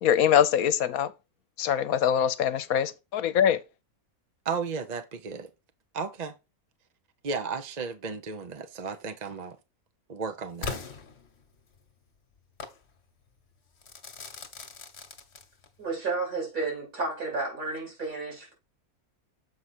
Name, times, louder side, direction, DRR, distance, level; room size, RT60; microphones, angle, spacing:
voice 1, 0.0-1.1 1.6-3.6, left 9 dB, 80° left, 1.2 m, -23 dB
voice 2, 4.5-5.5 5.9-6.3 7.2-9.6 10.1-10.8, right 5 dB, 40° right, 0.7 m, -34 dB
Crackle / Fireworks, 10.6-11.8 12.6-12.8 13.8-15.8, left 5 dB, 50° left, 1.4 m, -40 dB
voice 3, 15.8-18.5, right 3 dB, 75° right, 4.9 m, -32 dB
7.6 x 4.9 x 4.3 m
omnidirectional pair, 1.5 m